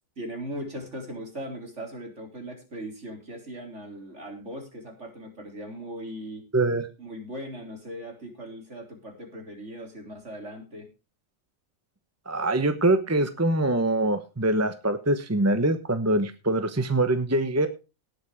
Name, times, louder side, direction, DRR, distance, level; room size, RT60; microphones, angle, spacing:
voice 1, 0.2-6.4 7.0-10.9, equal, 60° right, 3 dB, 4.2 m, -39 dB
voice 2, 6.5-6.9 12.3-17.7, right 2 dB, 15° right, 10 dB, 1.0 m, -24 dB
18.0 x 6.9 x 5.0 m, 0.30 s
omnidirectional pair, 1.4 m